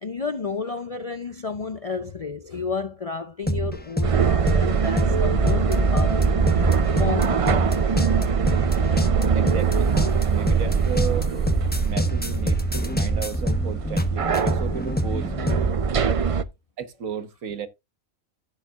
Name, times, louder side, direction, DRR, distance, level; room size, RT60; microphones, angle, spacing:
voice 1, 0.0-6.5 7.0-8.3 16.2-16.4, left 5 dB, 50° left, 0.4 m, -32 dB
sound 1, 3.4-15.7, right 1 dB, 10° left, 0.9 m, -26 dB
sound 2, 4.0-16.4, right 5 dB, 55° right, 0.3 m, -23 dB
voice 2, 9.3-9.9 10.2-11.4 11.8-15.3 16.8-17.7, right 7 dB, 80° right, 1.6 m, -33 dB
14.5 x 7.3 x 2.4 m
omnidirectional pair, 1.4 m